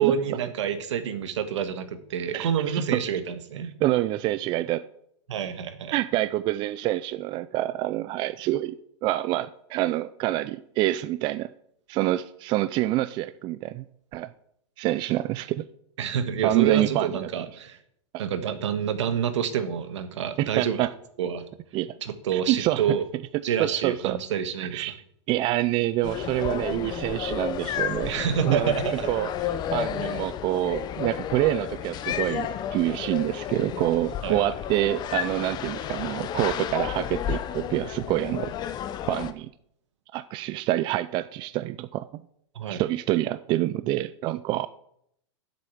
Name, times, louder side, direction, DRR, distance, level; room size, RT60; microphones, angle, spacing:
voice 1, 0.0-3.7 5.3-5.9 16.0-17.8 18.2-20.9 21.2-21.4 22.0-23.0 23.4-24.8 28.0-29.1 34.2-34.4 42.5-42.8, right 8 dB, 75° right, 9 dB, 1.5 m, -28 dB
voice 2, 2.3-2.8 3.8-4.8 5.9-8.7 9.0-11.5 11.9-13.8 14.1-14.3 14.8-15.7 16.4-17.1 18.1-18.2 20.4-20.9 21.7-21.9 22.3-22.8 23.6-24.2 24.7-25.0 25.3-28.7 29.1-29.3 29.7-38.5 39.1-39.5 40.1-42.2 42.7-44.7, right 15 dB, 30° right, 14 dB, 0.4 m, -26 dB
sound 1, 26.0-39.3, left 10 dB, 25° left, 0.7 m, -32 dB
8.0 x 7.8 x 7.1 m, 0.71 s
hypercardioid pair, 130°, 15 cm